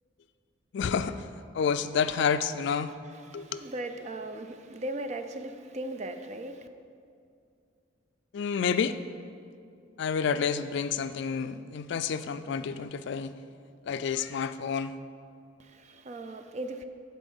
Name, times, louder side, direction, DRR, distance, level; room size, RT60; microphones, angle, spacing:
voice 1, 0.7-1.2 1.5-2.9 3.3-3.6 8.3-9.0 10.0-13.3 13.9-14.9, left 6 dB, 65° left, 0.3 m, -29 dB
voice 2, 3.1-6.7 15.6-16.9, right 1 dB, 35° right, 0.5 m, -38 dB
11.0 x 4.2 x 5.4 m
head